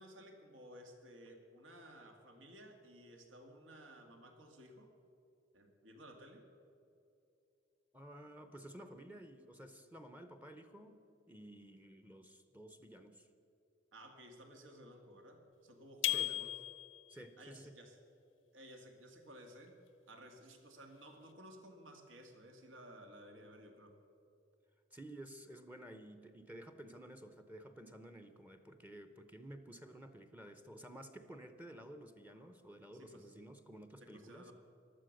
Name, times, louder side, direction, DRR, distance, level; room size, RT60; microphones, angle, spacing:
voice 1, 0.0-4.9 5.5-6.4 13.9-16.5 17.4-17.9 18.5-19.8 20.1-23.9 32.9-33.3 34.0-34.5, equal, 85° right, 4 dB, 2.0 m, -56 dB
voice 2, 7.9-11.0 11.3-13.3 16.0-16.3 17.1-17.7 24.9-34.5, right 1 dB, 10° right, 8 dB, 0.7 m, -53 dB
sound 1, 16.0-17.1, left 15 dB, 85° left, 0.7 m, -36 dB
15.5 x 12.0 x 6.5 m, 2.7 s
head